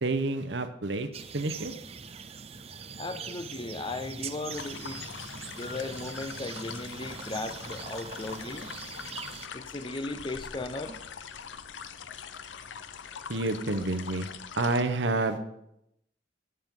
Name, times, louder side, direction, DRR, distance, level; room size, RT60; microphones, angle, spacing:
voice 1, 0.0-1.1 1.3-1.7 13.3-14.3 14.6-15.4, right 2 dB, 65° right, 9 dB, 0.9 m, -28 dB
sound 1, 1.1-9.5, right 6 dB, 30° right, 0.5 m, -42 dB
voice 2, 3.0-5.0 5.5-8.7 9.5-11.0, left 2 dB, 25° left, 9 dB, 0.6 m, -37 dB
sound 2, 4.5-14.8, left 7 dB, 70° left, 0.6 m, -43 dB
sound 3, 5.0-6.1 7.0-7.2 8.3-8.4, left 3 dB, 55° left, 4.9 m, -49 dB
14.5 x 7.7 x 3.8 m, 0.79 s
head